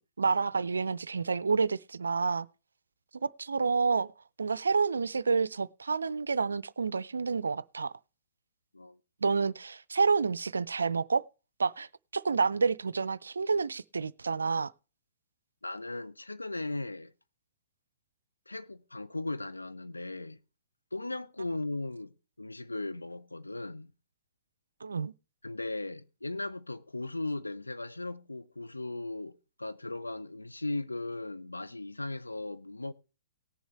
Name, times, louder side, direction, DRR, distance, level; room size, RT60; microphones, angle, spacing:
voice 1, 0.2-2.5 3.1-4.1 4.4-7.9 9.2-11.2 11.6-11.9 12.1-14.7 24.8-25.1, right 4 dB, 75° right, 0.4 m, -29 dB
voice 2, 15.6-17.1 18.5-20.4 20.9-22.1 22.4-23.9 25.4-32.9, left 2 dB, 85° left, 0.8 m, -37 dB
18.5 x 7.1 x 3.2 m
figure-of-eight pair, 115°, 0 cm